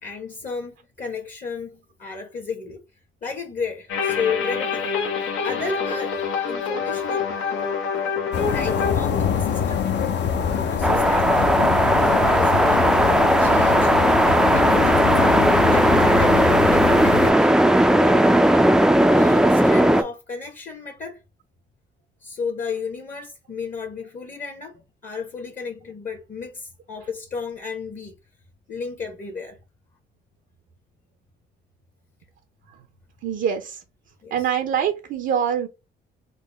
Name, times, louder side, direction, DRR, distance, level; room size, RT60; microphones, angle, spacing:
voice 1, 0.0-2.8 3.2-4.8 5.4-6.1 6.5-7.3 8.4-9.9 10.5-11.5 12.0-13.9 14.5-15.3 15.7-18.3 19.1-21.2 22.2-24.7 25.0-28.1 28.7-29.6 34.2-34.4, left 5 dB, 40° left, 1.0 m, -33 dB
sound 1, 3.9-8.9, left 6 dB, 85° left, 0.9 m, -26 dB
sound 2, 8.3-17.3, left 7 dB, 60° left, 0.6 m, -24 dB
sound 3, 10.8-20.0, right 1 dB, 5° right, 0.3 m, -17 dB
voice 2, 33.2-33.8 34.3-35.7, right 8 dB, 70° right, 0.6 m, -24 dB
3.8 x 2.1 x 3.2 m
cardioid pair, 90°, 20 cm